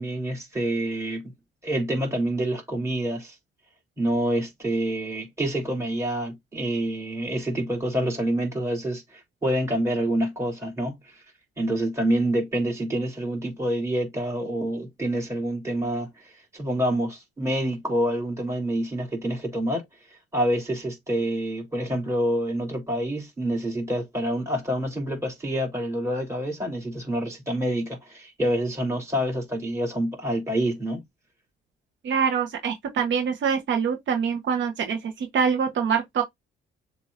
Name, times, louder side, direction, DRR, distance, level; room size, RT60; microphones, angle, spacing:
voice 1, 0.0-1.3 1.6-3.3 4.0-11.0 11.6-19.8 20.3-31.0, right 1 dB, 15° right, 3.4 m, -27 dB
voice 2, 32.0-36.2, right 6 dB, 70° right, 1.1 m, -25 dB
7.2 x 2.8 x 2.6 m
cardioid pair, 90°, 20 cm